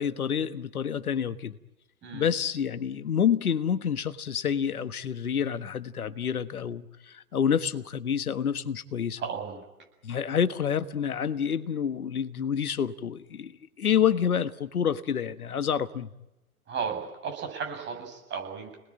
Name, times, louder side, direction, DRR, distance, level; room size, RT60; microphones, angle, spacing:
voice 1, 0.0-1.6 2.1-9.2 10.0-13.5 13.8-16.1, left 8 dB, 80° left, 1.4 m, -28 dB
voice 2, 2.0-2.3 9.2-9.6 16.7-18.8, right 6 dB, 25° right, 7.8 m, -34 dB
29.0 x 20.0 x 8.9 m
hypercardioid pair, 115°, 43 cm